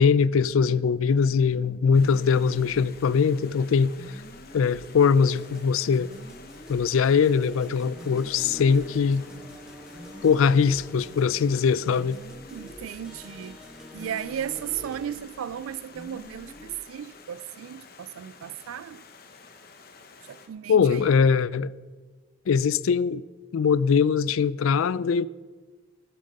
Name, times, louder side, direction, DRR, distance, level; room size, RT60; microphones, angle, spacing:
voice 1, 0.0-3.9 4.5-6.1 6.7-9.3 10.2-12.2 20.7-21.7 22.5-23.2 23.5-25.3, left 6 dB, 80° left, 0.4 m, -21 dB
sound 1, 1.0-16.8, equal, 20° left, 0.6 m, -49 dB
Stream, 1.9-20.5, left 4 dB, 45° left, 1.0 m, -50 dB
sound 2, 5.2-15.2, left 1 dB, 5° right, 1.2 m, -47 dB
voice 2, 12.5-13.6 13.9-19.0 20.3-21.2, right 9 dB, 85° right, 0.3 m, -35 dB
15.0 x 7.5 x 5.3 m
head